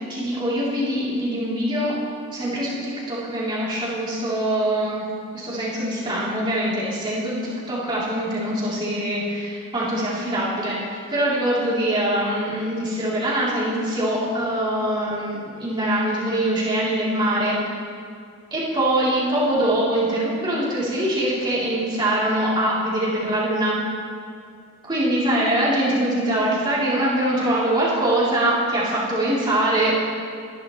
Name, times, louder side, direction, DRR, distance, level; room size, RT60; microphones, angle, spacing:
voice 1, 0.1-1.9 2.3-5.1 5.3-17.6 18.5-23.8 24.9-30.0, right 1 dB, 20° right, -9 dB, 3.4 m, -23 dB
20.5 x 11.0 x 3.2 m, 2.3 s
head